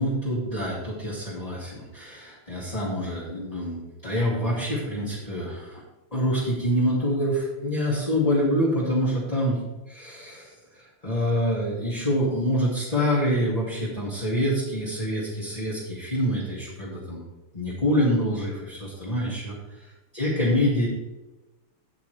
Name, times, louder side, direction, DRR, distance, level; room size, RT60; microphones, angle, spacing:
voice 1, 0.0-5.8 6.1-9.6 9.9-17.2 17.5-20.9, equal, 15° left, -8 dB, 2.4 m, -26 dB
17.0 x 5.8 x 3.4 m, 1.1 s
omnidirectional pair, 2.4 m